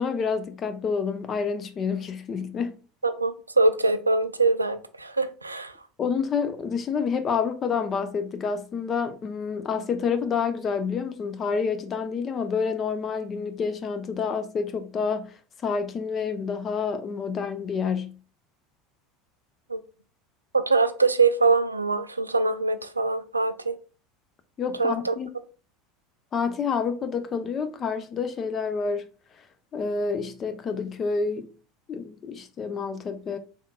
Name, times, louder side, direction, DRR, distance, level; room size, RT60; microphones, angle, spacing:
voice 1, 0.0-2.8 6.0-18.2 24.6-25.3 26.3-29.1 29.7-31.5 31.9-33.4, left 5 dB, 30° left, 0.5 m, -28 dB
voice 2, 3.0-5.7 19.7-19.8 20.5-23.8 24.8-25.1, right 3 dB, 85° right, 0.3 m, -23 dB
4.3 x 3.6 x 2.2 m
figure-of-eight pair, 75°, 0 cm